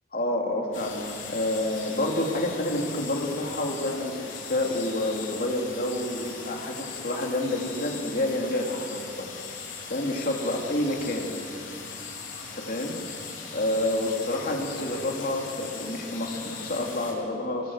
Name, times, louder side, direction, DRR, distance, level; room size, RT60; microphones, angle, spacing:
voice 1, 0.1-9.3 9.9-11.3 12.5-13.0 13.5-17.7, left 1 dB, 50° left, 1 dB, 3.1 m, -29 dB
sound 1, 0.7-17.1, left 5 dB, 85° left, 4.5 m, -39 dB
25.0 x 21.0 x 7.5 m, 2.7 s
head